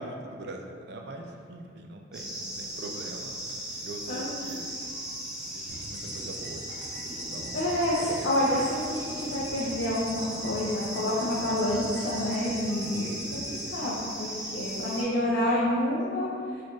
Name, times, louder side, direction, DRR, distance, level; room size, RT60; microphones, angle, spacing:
voice 1, 0.0-3.3 3.8-4.7 5.5-6.9 7.3-8.3 15.4-15.6, right 2 dB, 60° right, 2 dB, 0.4 m, -42 dB
sound 1, 2.1-15.0, equal, 5° right, 0.5 m, -37 dB
sound 2, 5.7-13.7, equal, 85° right, 1.0 m, -44 dB
voice 2, 7.5-16.6, left 1 dB, 65° left, -7 dB, 0.5 m, -28 dB
4.1 x 2.4 x 3.0 m, 2.3 s
head